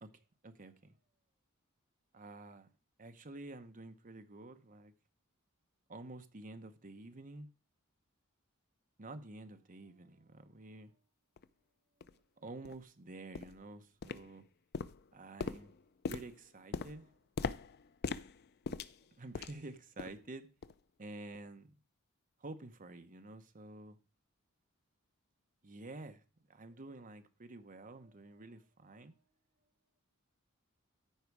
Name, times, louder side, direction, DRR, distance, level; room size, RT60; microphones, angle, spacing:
voice 1, 0.4-0.9 2.1-2.7 3.0-4.9 5.9-7.5 9.0-11.0 12.4-14.4 15.1-15.7 16.1-17.2 19.2-20.5 21.0-21.7 22.4-24.0 25.6-26.2 26.5-29.2, right 2 dB, 40° right, 1.0 m, -50 dB
sound 1, 11.4-11.5 12.0-12.1 12.6-12.8 13.3-13.6 14.0-14.5 14.7-19.7 20.0-20.3 20.6-20.8 21.3-21.4, left 5 dB, 50° left, 0.4 m, -41 dB
14.0 x 4.9 x 4.7 m
head